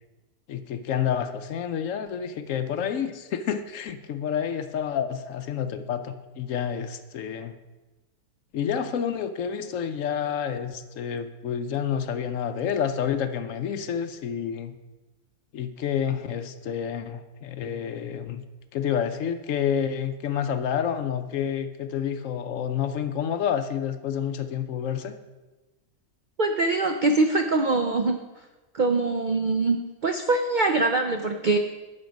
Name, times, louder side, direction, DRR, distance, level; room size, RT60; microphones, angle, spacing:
voice 1, 0.5-7.5 8.5-14.7 15.5-18.4 18.7-25.2, left 8 dB, 65° left, 9 dB, 0.9 m, -29 dB
voice 2, 26.4-28.2 28.7-31.6, right 3 dB, 80° right, 5 dB, 0.4 m, -23 dB
10.5 x 6.4 x 5.2 m, 1.2 s
omnidirectional pair, 1.6 m